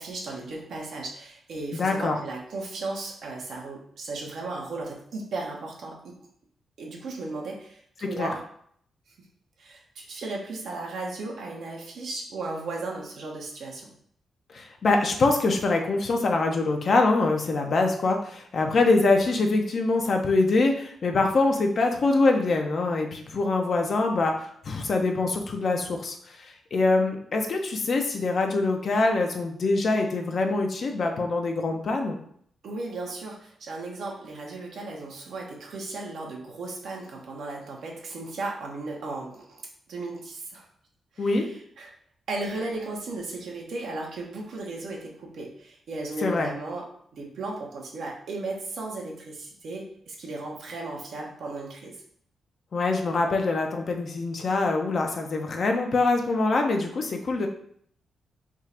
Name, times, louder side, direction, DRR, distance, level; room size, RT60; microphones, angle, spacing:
voice 1, 0.0-6.1 6.8-8.4 9.6-13.9 32.6-39.6 39.9-40.6 41.1-41.9 42.3-52.0, right 3 dB, 75° right, -1 dB, 1.0 m, -36 dB
voice 2, 1.7-2.2 8.2-8.3 14.5-32.2 41.2-41.5 46.2-46.5 52.7-57.5, left 3 dB, 60° left, 3 dB, 0.7 m, -24 dB
3.7 x 2.4 x 4.3 m, 0.64 s
cardioid pair, 65°, 0 cm